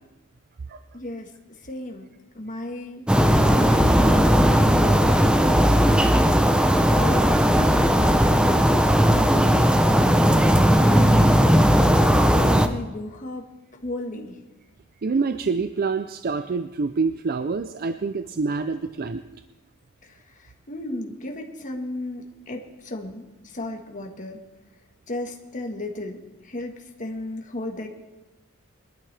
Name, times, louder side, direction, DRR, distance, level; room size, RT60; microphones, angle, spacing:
voice 1, 0.9-1.3 1.6-2.1 2.3-3.0 3.7-6.1 6.9-10.0 10.3-11.6 11.9-13.5 13.8-14.4 20.0-24.4 25.1-27.9, left 1 dB, 35° left, 2 dB, 1.5 m, -35 dB
sound 1, 3.1-12.7, equal, 5° right, 0.6 m, -17 dB
voice 2, 15.0-19.2, right 4 dB, 45° right, 10 dB, 0.4 m, -26 dB
21.5 x 12.0 x 3.4 m, 1.1 s
head